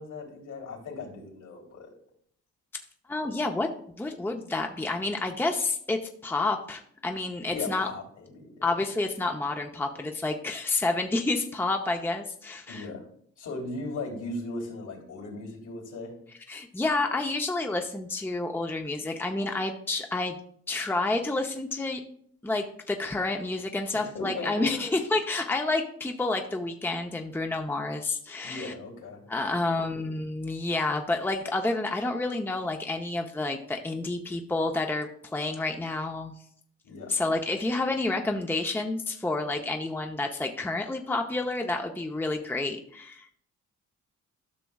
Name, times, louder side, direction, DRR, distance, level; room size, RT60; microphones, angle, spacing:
voice 1, 0.0-1.9 7.5-8.7 12.7-13.0 13.4-16.1 23.9-24.7 28.4-29.3 29.6-29.8 36.8-37.1, left 2 dB, 70° left, 1 dB, 3.1 m, -38 dB
voice 2, 3.1-3.7 4.0-7.9 8.6-12.9 16.5-20.4 20.7-22.0 22.4-28.7 29.3-36.4 37.1-43.3, left 2 dB, 5° left, 3 dB, 0.7 m, -29 dB
12.5 x 5.9 x 2.3 m, 0.64 s
cardioid pair, 70°, 31 cm